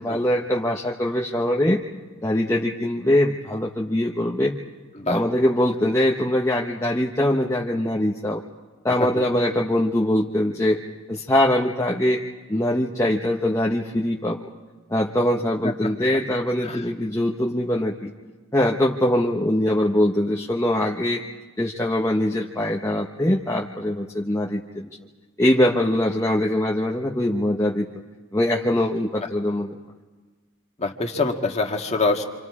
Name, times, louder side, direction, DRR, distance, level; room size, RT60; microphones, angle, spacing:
voice 1, 0.0-1.8 2.2-4.5 5.1-8.4 8.8-10.8 11.1-12.2 12.5-14.4 14.9-18.1 18.5-21.2 21.6-24.9 25.4-27.9 28.3-29.8, left 1 dB, 15° left, -2 dB, 0.9 m, -22 dB
voice 2, 30.8-32.2, left 3 dB, 30° left, 2 dB, 1.8 m, -25 dB
29.0 x 26.5 x 4.9 m, 1.3 s
head